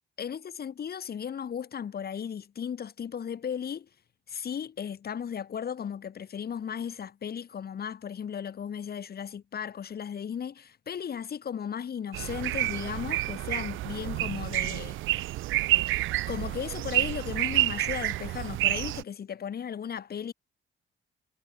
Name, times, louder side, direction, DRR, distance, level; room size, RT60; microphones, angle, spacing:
voice 1, 0.2-3.9 4.3-15.0 16.3-20.3, left 8 dB, 50° left, 3.0 m, -36 dB
sound 1, 12.1-19.0, right 16 dB, 85° right, 0.7 m, -29 dB
cardioid pair, 90°, 20 cm